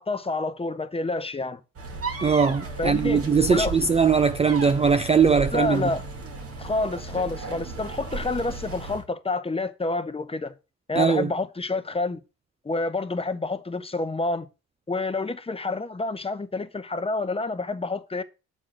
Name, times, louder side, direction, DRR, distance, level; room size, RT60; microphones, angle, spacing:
voice 1, 0.0-1.6 2.8-3.7 5.5-6.0 6.6-10.5 10.9-12.2 12.6-14.5 14.9-18.2, left 3 dB, 20° left, 0.9 m, -28 dB
sound 1, 1.8-9.0, right 3 dB, 50° right, 2.0 m, -35 dB
voice 2, 2.2-5.9 11.0-11.3, right 5 dB, 20° right, 0.4 m, -20 dB
7.5 x 3.8 x 6.6 m
cardioid pair, 90°, 30 cm